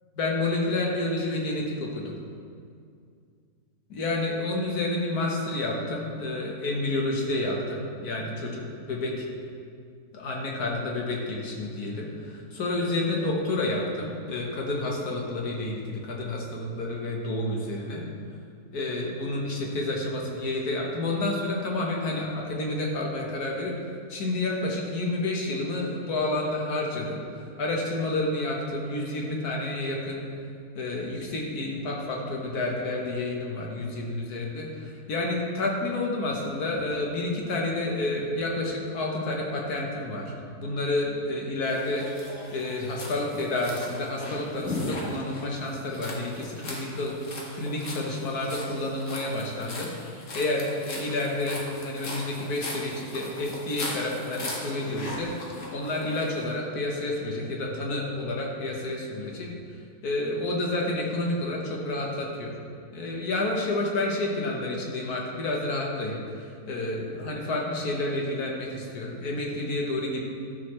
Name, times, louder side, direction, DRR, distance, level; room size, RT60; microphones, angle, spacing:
voice 1, 0.1-2.1 3.9-9.2 10.1-18.0 18.7-23.7 24.1-30.2 30.7-40.3 40.6-42.1 42.5-47.1 47.5-49.9 50.3-55.3 55.7-59.5 60.0-62.5 62.9-66.2 66.7-70.2, left 2 dB, 80° left, -1 dB, 1.7 m, -29 dB
sound 1, 41.7-56.4, left 2 dB, 55° left, 1.6 m, -38 dB
12.5 x 6.3 x 3.2 m, 2.3 s
omnidirectional pair, 1.6 m